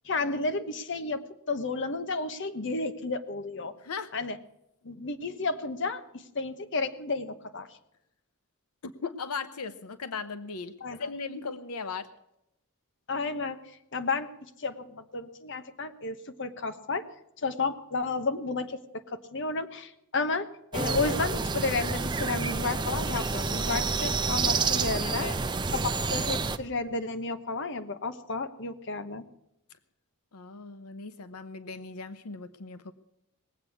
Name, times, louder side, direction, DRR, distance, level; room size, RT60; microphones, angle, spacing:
voice 1, 0.0-3.7 4.1-4.4 4.8-7.7 10.8-11.0 13.1-13.6 13.9-14.3 14.6-17.0 17.4-18.8 19.1-20.5 20.7-25.3 25.7-29.2, left 3 dB, 55° left, 9 dB, 1.1 m, -32 dB
voice 2, 3.8-4.1 8.8-12.1 25.0-25.4 30.3-32.9, left 4 dB, 90° left, 11 dB, 0.8 m, -38 dB
sound 1, 20.7-26.6, right 4 dB, 20° right, 0.6 m, -29 dB
20.0 x 8.3 x 7.1 m, 0.85 s
head